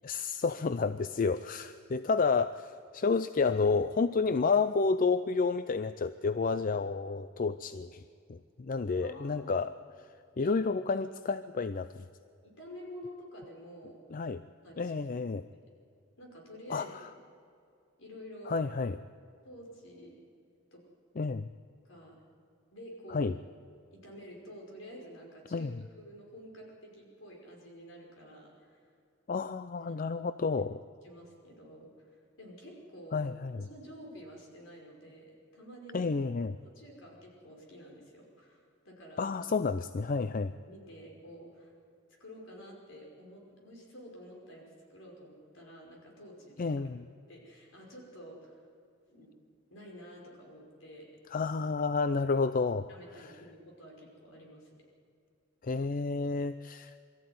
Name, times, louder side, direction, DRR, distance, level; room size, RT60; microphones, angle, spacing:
voice 1, 0.0-8.0 8.3-9.7 10.4-12.0 14.1-14.4 14.8-15.4 16.7-17.1 18.5-19.0 21.2-21.5 23.1-23.3 25.5-25.8 29.3-30.8 33.1-33.6 35.9-36.5 39.2-40.5 46.6-47.0 51.3-52.9 53.2-53.3 55.6-56.9, left 4 dB, 40° left, 12 dB, 0.5 m, -30 dB
voice 2, 9.0-9.5 10.4-10.7 12.4-14.0 14.6-15.0 16.2-16.9 18.0-18.6 19.4-20.1 20.7-20.8 21.8-22.1 22.7-23.3 23.9-25.7 26.0-28.8 29.9-30.0 31.0-33.2 33.6-36.1 36.6-39.3 40.6-41.7 42.2-46.8 47.3-48.7 49.1-49.4 49.7-51.1 52.9-54.7, equal, 70° left, 0 dB, 5.4 m, -50 dB
23.0 x 14.0 x 9.4 m, 2.4 s
head